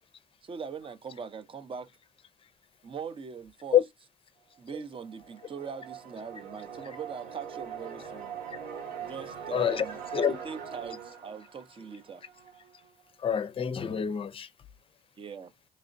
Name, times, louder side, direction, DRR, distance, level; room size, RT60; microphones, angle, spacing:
voice 1, 0.4-1.9 2.8-3.8 4.6-8.3 9.0-10.0 10.4-12.2 15.2-15.5, right 6 dB, 30° right, 0.7 m, -41 dB
sound 1, 4.9-12.7, right 7 dB, 60° right, 1.2 m, -42 dB
voice 2, 9.5-9.8 10.1-10.4 13.2-14.5, left 9 dB, 30° left, 0.6 m, -26 dB
4.8 x 3.1 x 2.6 m
cardioid pair, 110°, 17 cm